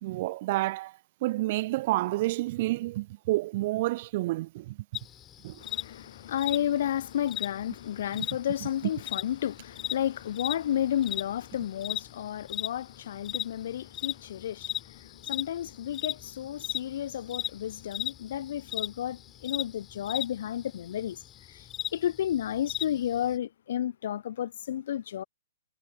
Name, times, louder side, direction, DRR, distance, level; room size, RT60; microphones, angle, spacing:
voice 1, 0.0-4.8 5.4-5.6, right 18 dB, 35° right, 0.6 m, -29 dB
sound 1, 4.9-23.4, left 11 dB, 20° left, 4.5 m, -37 dB
voice 2, 5.6-21.2 21.5-25.2, left 11 dB, 50° left, 0.8 m, -32 dB
figure-of-eight pair, 120°, 0 cm